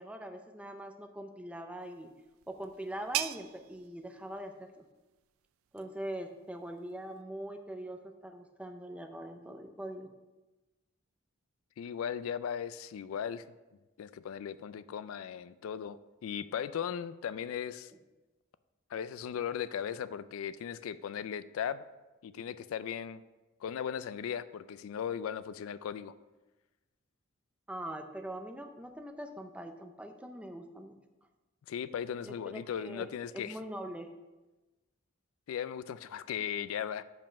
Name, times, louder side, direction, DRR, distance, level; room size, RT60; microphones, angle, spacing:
voice 1, 0.0-2.1 2.5-4.8 5.7-10.1 27.7-30.9 32.2-33.1 33.3-34.1, right 1 dB, 5° right, 5 dB, 0.4 m, -42 dB
sound 1, 1.8-7.2, right 13 dB, 80° right, 0.3 m, -43 dB
voice 2, 11.8-13.4 14.0-17.9 18.9-21.9 22.2-23.2 23.6-26.1 31.7-33.6 35.5-37.0, left 8 dB, 80° left, 14 dB, 0.3 m, -37 dB
5.3 x 5.3 x 5.7 m, 1.1 s
head